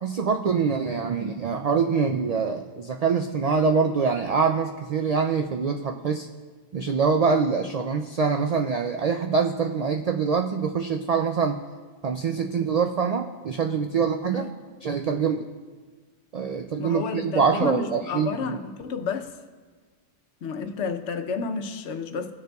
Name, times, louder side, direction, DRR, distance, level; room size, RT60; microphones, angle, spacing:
voice 1, 0.0-6.3 6.7-11.6 12.0-14.5 14.8-15.5 16.3-18.6, right 5 dB, 70° right, 4 dB, 0.3 m, -24 dB
voice 2, 16.8-19.3 20.4-22.3, left 5 dB, 80° left, 7 dB, 1.0 m, -31 dB
18.0 x 6.5 x 2.3 m, 1.4 s
omnidirectional pair, 1.2 m